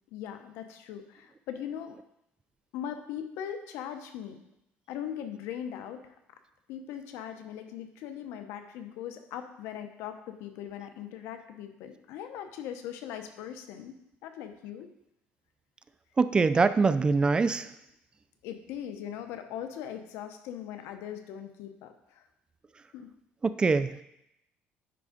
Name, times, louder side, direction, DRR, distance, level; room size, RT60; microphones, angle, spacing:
voice 1, 0.1-1.9 2.7-4.4 4.9-6.1 6.7-14.9 18.4-22.2 22.9-23.1, left 9 dB, 90° left, 7 dB, 0.8 m, -40 dB
voice 2, 16.2-17.7 23.4-24.0, right 4 dB, 20° right, 13 dB, 0.3 m, -24 dB
9.8 x 3.6 x 4.9 m, 0.81 s
cardioid pair, 130°, 4 cm